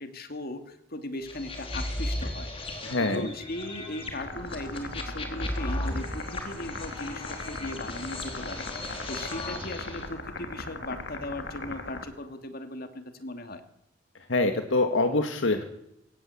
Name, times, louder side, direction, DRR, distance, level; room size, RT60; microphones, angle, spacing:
voice 1, 0.0-2.5 2.8-13.6, left 1 dB, 55° left, 8 dB, 2.5 m, -38 dB
sound 1, 1.3-10.1, left 1 dB, 30° left, 4.1 m, -36 dB
voice 2, 2.8-3.3 14.3-15.6, left 2 dB, 90° left, 6 dB, 1.8 m, -25 dB
sound 2, 4.2-12.0, left 3 dB, 70° left, 3.1 m, -39 dB
22.5 x 18.5 x 8.5 m, 0.82 s
head